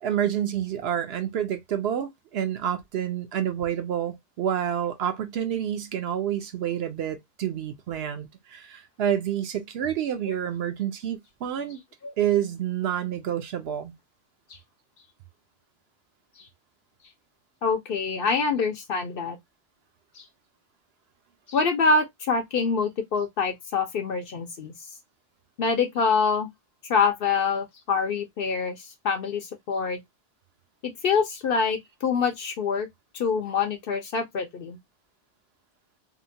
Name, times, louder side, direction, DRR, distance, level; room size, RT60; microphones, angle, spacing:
voice 1, 0.0-11.8 12.2-13.9, right 10 dB, 65° right, 0.7 m, -28 dB
voice 2, 17.6-19.4 20.2-20.3 21.5-24.7 25.6-26.5 26.9-28.8 29.0-30.0 30.8-32.9 33.2-34.8, left 5 dB, 60° left, 0.7 m, -25 dB
2.8 x 2.1 x 2.6 m
omnidirectional pair, 1.2 m